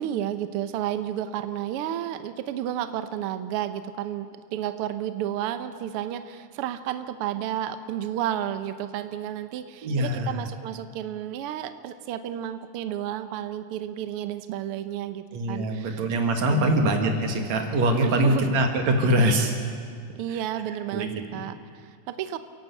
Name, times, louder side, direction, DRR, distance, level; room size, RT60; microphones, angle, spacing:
voice 1, 0.0-16.1 16.5-16.8 18.0-18.6 20.2-22.4, right 11 dB, 85° right, 11 dB, 1.2 m, -32 dB
voice 2, 9.8-10.4 15.3-19.5 20.9-21.2, right 1 dB, 60° right, 4 dB, 3.0 m, -23 dB
29.0 x 11.5 x 8.2 m, 2.1 s
omnidirectional pair, 3.6 m